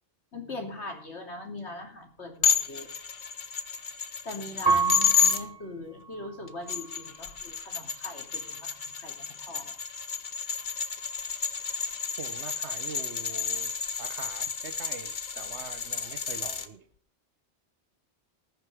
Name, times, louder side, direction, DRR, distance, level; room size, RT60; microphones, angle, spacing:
voice 1, 0.3-2.9 4.2-9.8, left 2 dB, 75° left, 2 dB, 3.2 m, -41 dB
sound 1, 2.4-5.4 6.5-16.7, left 7 dB, 45° left, 1.0 m, -31 dB
Piano, 4.7-7.4 8.0-8.7, right 5 dB, 20° right, 1.3 m, -31 dB
voice 2, 12.1-13.7 14.0-16.9, right 6 dB, 80° right, 9 dB, 1.4 m, -43 dB
19.5 x 6.6 x 5.0 m, 0.44 s
omnidirectional pair, 1.1 m